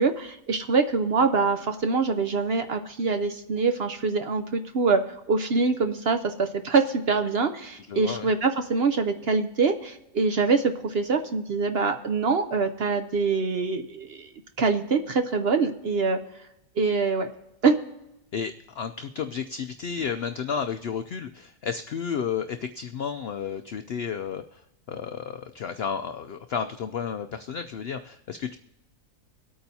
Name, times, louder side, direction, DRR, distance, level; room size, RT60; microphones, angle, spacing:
voice 1, 0.0-14.3 14.6-16.2 16.8-17.3 17.6-17.8, right 4 dB, 55° right, 7 dB, 0.7 m, -24 dB
voice 2, 7.9-8.3 18.3-28.6, left 7 dB, 75° left, 8 dB, 0.5 m, -32 dB
23.5 x 8.7 x 2.8 m, 0.89 s
omnidirectional pair, 1.6 m